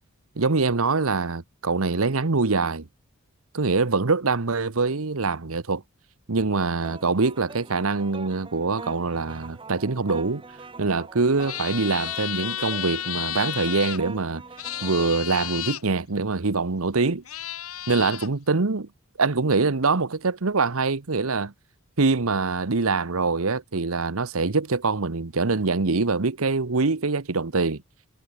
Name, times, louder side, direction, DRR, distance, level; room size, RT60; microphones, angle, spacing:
voice 1, 0.4-2.9 3.5-5.8 6.3-10.4 10.8-14.4 14.8-17.2 17.9-18.9 19.2-21.5 22.0-27.8, right 3 dB, 70° right, 1.1 m, -24 dB
sound 1, 6.8-15.2, right 3 dB, 25° right, 1.2 m, -43 dB
sound 2, 11.4-14.0 14.6-15.8 16.8-16.9 17.3-18.3, left 12 dB, 80° left, 3.6 m, -32 dB
head